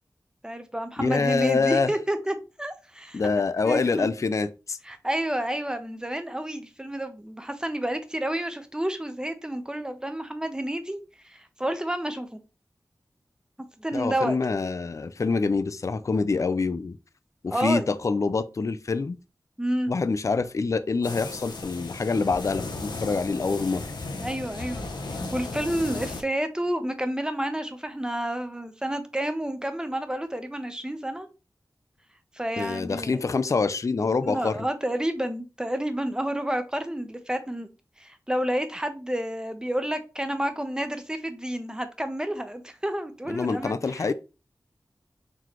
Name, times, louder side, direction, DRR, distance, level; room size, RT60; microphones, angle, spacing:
voice 1, 0.4-3.2 3.6-4.1 4.8-11.0 11.2-12.4 13.6-14.4 17.5-17.9 19.6-19.9 24.2-24.9 25.3-31.3 32.3-33.2 34.2-37.7 38.0-44.1, right 1 dB, 10° right, 0.6 m, -30 dB
voice 2, 1.0-1.9 3.1-4.8 13.9-17.0 17.4-19.2 19.9-23.8 32.6-34.6 43.3-44.1, left 4 dB, 45° left, 0.3 m, -26 dB
sound 1, 21.0-26.2, left 3 dB, 90° left, 0.6 m, -35 dB
4.0 x 3.1 x 2.9 m
wide cardioid pair, 75°, 7 cm